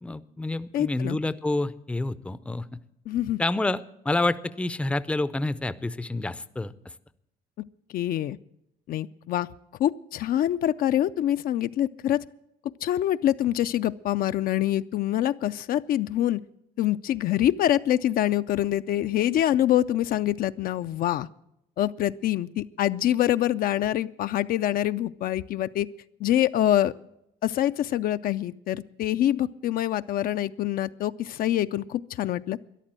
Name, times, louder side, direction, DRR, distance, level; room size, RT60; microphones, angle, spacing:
voice 1, 0.0-2.7 3.4-6.7, left 2 dB, 5° left, 15 dB, 0.5 m, -28 dB
voice 2, 0.7-1.2 3.1-3.4 7.9-8.4 8.9-9.5 9.8-12.2 12.8-16.4 16.8-21.3 21.8-25.9 26.2-26.9 27.4-32.6, left 12 dB, 60° left, 12 dB, 0.4 m, -25 dB
13.5 x 11.0 x 7.5 m, 0.80 s
cardioid pair, 110°, 17 cm